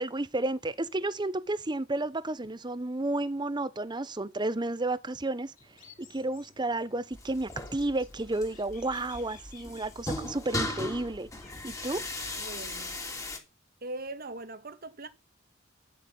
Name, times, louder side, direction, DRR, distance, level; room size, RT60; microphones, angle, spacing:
voice 1, 0.0-5.5 6.0-11.3 11.6-12.0, right 2 dB, 20° right, 0.9 m, -32 dB
sound 1, 5.6-12.4, left 5 dB, 45° left, 3.7 m, -56 dB
sound 2, 7.1-13.4, left 2 dB, 15° left, 2.8 m, -38 dB
voice 2, 12.3-13.0 13.8-15.1, right 2 dB, 50° right, 1.7 m, -40 dB
13.0 x 6.5 x 9.2 m
head